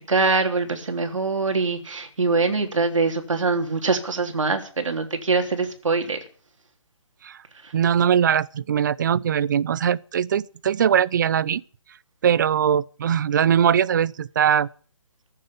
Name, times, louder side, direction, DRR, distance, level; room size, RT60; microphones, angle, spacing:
voice 1, 0.1-6.2 7.6-7.7, right 4 dB, 75° right, 3.4 m, -23 dB
voice 2, 7.7-11.6 12.2-14.7, right 8 dB, 35° right, 0.6 m, -21 dB
15.0 x 7.6 x 8.6 m
figure-of-eight pair, 150°, 17 cm